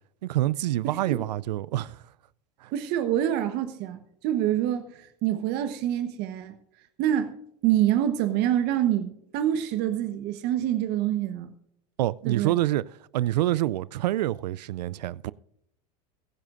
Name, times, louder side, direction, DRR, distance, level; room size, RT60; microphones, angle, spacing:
voice 1, 0.2-2.0 2.6-2.7 12.0-12.8 13.1-15.3, right 15 dB, 80° right, 0.4 m, -26 dB
voice 2, 0.8-1.2 2.7-6.5 7.0-7.4 7.6-11.5 12.2-12.5, right 11 dB, 50° right, 1.1 m, -26 dB
22.5 x 10.5 x 2.5 m
hypercardioid pair, 95°, 21 cm